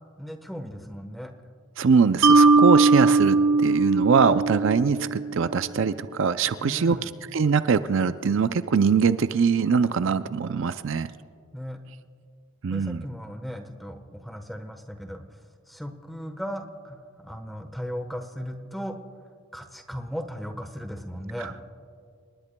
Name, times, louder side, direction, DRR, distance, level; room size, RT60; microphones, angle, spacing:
voice 1, 0.2-1.3 6.6-7.1 11.5-11.8 12.7-15.2 15.7-19.0 19.5-21.6, equal, ahead, 6 dB, 1.1 m, -36 dB
voice 2, 1.8-7.0 7.3-11.1 12.6-13.0 21.4-21.6, right 5 dB, 65° right, 12 dB, 0.4 m, -22 dB
Mallet percussion, 2.2-5.5, right 3 dB, 90° right, 0.8 m, -19 dB
30.0 x 19.5 x 2.2 m, 2.3 s
head